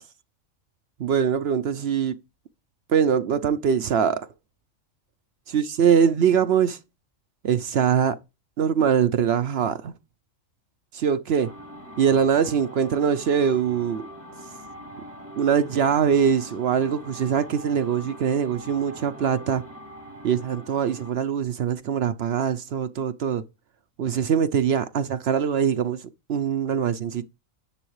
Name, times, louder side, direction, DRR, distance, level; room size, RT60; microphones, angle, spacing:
voice 1, 1.0-2.2 2.9-4.3 5.5-6.8 7.4-8.2 8.6-9.9 10.9-11.5 12.0-14.1 15.4-19.6 20.2-23.4 24.0-27.3, right 7 dB, 60° right, 0.7 m, -23 dB
sound 1, 11.4-21.2, equal, 10° right, 3.4 m, -42 dB
10.0 x 7.7 x 3.1 m
omnidirectional pair, 1.4 m